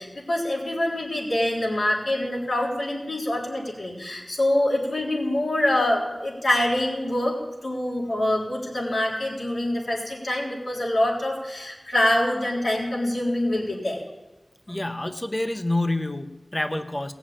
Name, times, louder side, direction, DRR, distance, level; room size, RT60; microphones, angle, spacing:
voice 1, 0.0-7.4 7.6-14.0 14.7-14.8, left 1 dB, 90° left, -4 dB, 3.6 m, -25 dB
voice 2, 14.7-17.1, left 1 dB, 25° left, 8 dB, 0.8 m, -27 dB
18.0 x 7.2 x 8.7 m, 1.1 s
wide cardioid pair, 50°, 0 cm